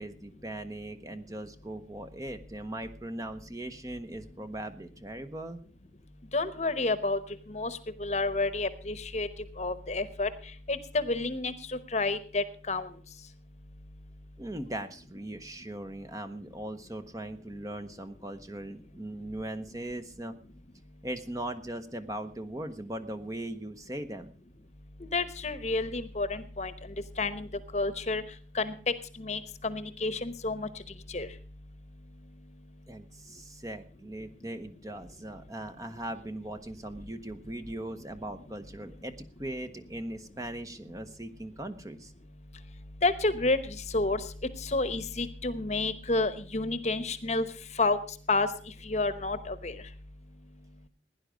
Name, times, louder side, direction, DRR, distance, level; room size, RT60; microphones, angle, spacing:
voice 1, 0.0-5.6 14.4-20.4 21.0-24.3 32.9-39.1 39.4-42.1, right 1 dB, 20° right, 9 dB, 0.8 m, -39 dB
voice 2, 6.3-7.2 7.5-9.3 9.6-10.3 10.7-12.9 25.0-26.7 27.2-27.5 27.7-28.2 28.5-30.7 31.1-31.3 43.0-44.3 44.6-47.5 47.7-48.0 48.3-48.5 48.8-49.8, left 3 dB, 35° left, 13 dB, 1.0 m, -30 dB
16.5 x 10.5 x 5.0 m, 0.42 s
head